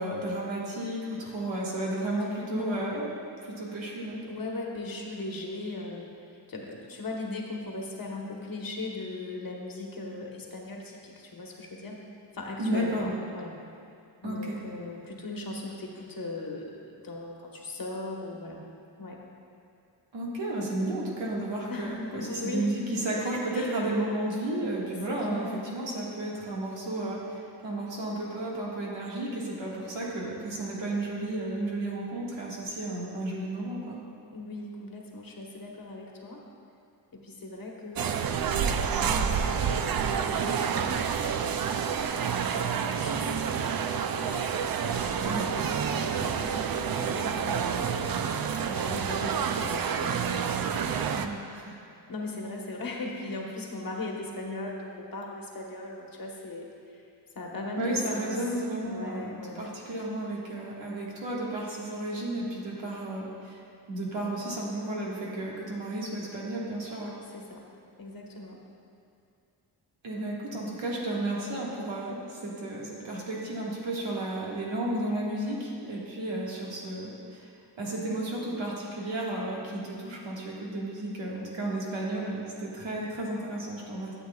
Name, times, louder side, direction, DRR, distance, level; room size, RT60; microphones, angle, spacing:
voice 1, 0.0-3.1 3.4-4.2 12.6-13.2 14.2-14.6 20.1-34.0 45.2-45.4 51.1-51.7 57.8-63.6 63.9-67.2 70.0-84.1, right 1 dB, 75° right, -4 dB, 1.8 m, -33 dB
voice 2, 2.5-3.0 4.3-12.0 12.3-13.5 14.2-18.6 19.0-19.2 21.7-22.7 23.5-23.8 25.3-25.6 34.3-36.4 37.1-41.9 42.2-44.4 45.2-50.5 52.1-57.0 57.3-58.4 58.7-59.7 67.3-67.6 68.0-68.6, left 2 dB, 50° left, -1 dB, 1.2 m, -39 dB
sound 1, 38.0-51.3, right 7 dB, 55° right, 0.5 m, -28 dB
12.5 x 7.9 x 2.3 m, 2.4 s
wide cardioid pair, 100°, 44 cm